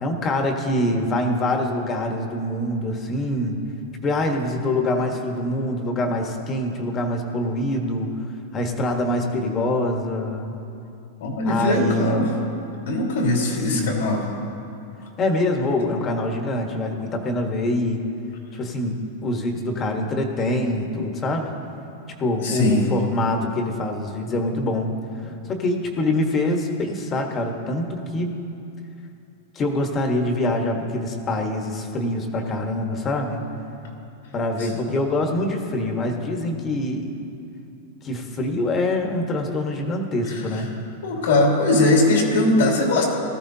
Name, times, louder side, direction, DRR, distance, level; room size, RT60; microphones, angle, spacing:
voice 1, 0.0-3.6 4.0-8.1 8.5-10.5 11.4-12.2 13.7-14.1 15.2-18.0 18.5-21.5 22.2-24.9 25.2-28.4 29.5-33.4 34.3-37.1 38.0-40.7, left 1 dB, 25° left, 3 dB, 1.4 m, -25 dB
voice 2, 11.2-12.3 12.9-14.2 22.4-22.9 25.2-25.3 34.6-34.7 40.3-40.4 41.0-43.0, left 2 dB, 85° left, -2 dB, 2.6 m, -20 dB
19.0 x 13.5 x 2.8 m, 2.7 s
supercardioid pair, 145°, 0 cm